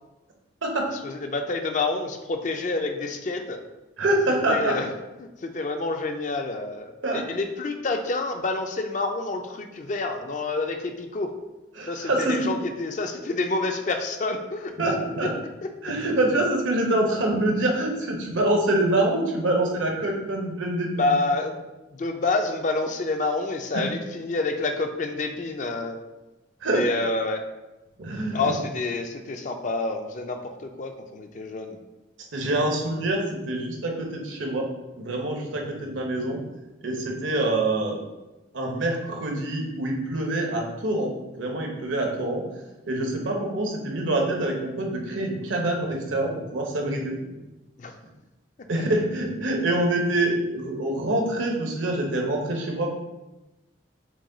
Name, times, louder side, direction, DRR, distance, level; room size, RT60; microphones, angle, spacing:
voice 1, 1.0-3.6 4.5-4.9 5.2-11.3 11.9-14.7 20.9-21.6 21.9-26.0 26.7-27.4 28.3-31.8 47.8-48.0, left 3 dB, 40° left, 5 dB, 0.4 m, -28 dB
voice 2, 4.0-4.7 7.0-7.2 11.7-12.3 14.8-15.3 15.8-21.1 23.7-23.8 26.6-26.8 28.0-28.4 32.3-33.2 33.5-34.7 35.0-36.4 36.8-38.0 38.5-42.4 42.8-47.1 48.7-52.9, right 1 dB, 85° right, 1 dB, 0.9 m, -25 dB
6.0 x 2.3 x 3.8 m, 1.0 s
head